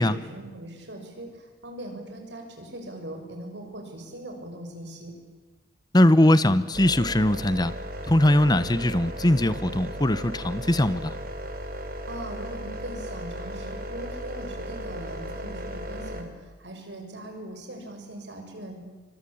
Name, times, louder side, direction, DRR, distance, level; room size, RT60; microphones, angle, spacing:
voice 1, 0.0-5.2 12.0-18.8, right 1 dB, 85° right, 4 dB, 6.6 m, -40 dB
voice 2, 5.9-7.7 8.1-11.1, left 1 dB, 25° left, 15 dB, 1.0 m, -21 dB
sound 1, 6.7-16.2, equal, 60° right, 3.0 m, -36 dB
26.5 x 24.0 x 8.7 m, 1.2 s
head